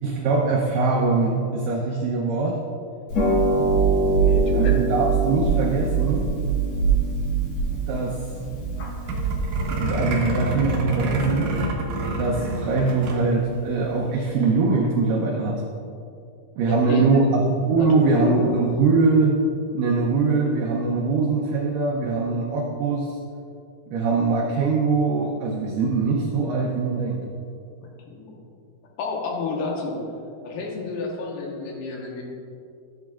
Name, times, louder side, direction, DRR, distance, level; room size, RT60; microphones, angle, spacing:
voice 1, 0.0-2.6 4.5-6.3 7.7-8.2 9.7-11.5 12.2-15.6 16.6-19.4 19.7-23.2 23.9-27.2, right 4 dB, 80° right, -1 dB, 1.9 m, -22 dB
Harp, 3.1-9.8, right 4 dB, 55° left, 2.0 m, -22 dB
voice 2, 4.2-4.7 16.7-17.2 17.8-18.5 27.8-28.4 29.0-30.0 30.4-32.2, left 3 dB, 75° left, -1 dB, 3.1 m, -29 dB
sound 1, 9.1-13.2 13.5-13.6 13.8-14.2, right 1 dB, 60° right, 2.6 m, -27 dB
13.5 x 8.0 x 2.4 m, 2.5 s
omnidirectional pair, 4.8 m